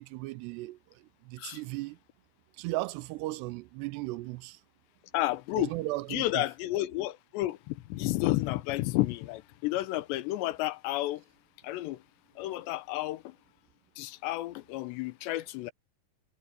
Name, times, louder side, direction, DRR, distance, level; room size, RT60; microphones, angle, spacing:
voice 1, 0.0-2.0 2.6-4.6 5.6-6.4, right 20 dB, 85° right, 2.7 m, -36 dB
voice 2, 5.1-5.7 6.1-11.2 11.6-12.0 12.4-13.4 14.0-15.7, left 17 dB, 90° left, 3.1 m, -31 dB
omnidirectional pair, 4.9 m